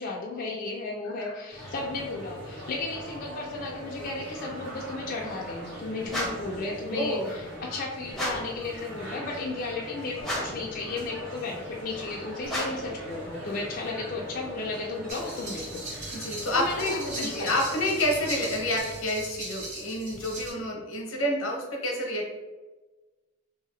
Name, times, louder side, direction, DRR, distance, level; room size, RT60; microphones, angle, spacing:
voice 1, 0.0-15.8 16.5-17.6, left 3 dB, 45° left, -2 dB, 0.4 m, -34 dB
sound 1, 1.5-18.8, equal, 70° right, 1.3 m, -41 dB
sound 2, 6.1-6.6 8.1-8.6 10.2-10.7 12.4-12.9, equal, ahead, 0.6 m, -32 dB
voice 2, 6.9-7.4 16.1-22.3, left 1 dB, 85° left, 0 dB, 0.8 m, -29 dB
sound 3, 15.1-20.5, right 2 dB, 35° right, 0.8 m, -39 dB
2.8 x 2.7 x 3.0 m, 1.2 s
head